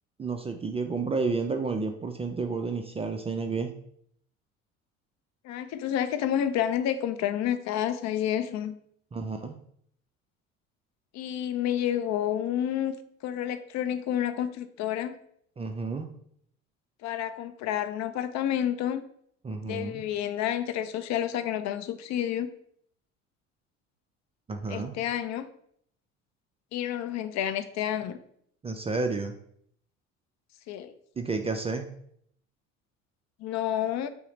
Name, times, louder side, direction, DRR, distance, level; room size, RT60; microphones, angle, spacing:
voice 1, 0.2-3.7 9.1-9.6 15.6-16.1 19.4-20.0 24.5-24.9 28.6-29.3 31.2-31.9, right 4 dB, 15° right, 5 dB, 0.4 m, -31 dB
voice 2, 5.4-8.8 11.1-12.9 13.2-15.1 17.0-19.0 19.6-22.5 24.7-25.5 26.7-28.2 30.7-30.9 33.4-34.1, left 10 dB, 45° left, 10 dB, 0.5 m, -29 dB
5.5 x 2.1 x 3.9 m, 0.66 s
hypercardioid pair, 65°, 39 cm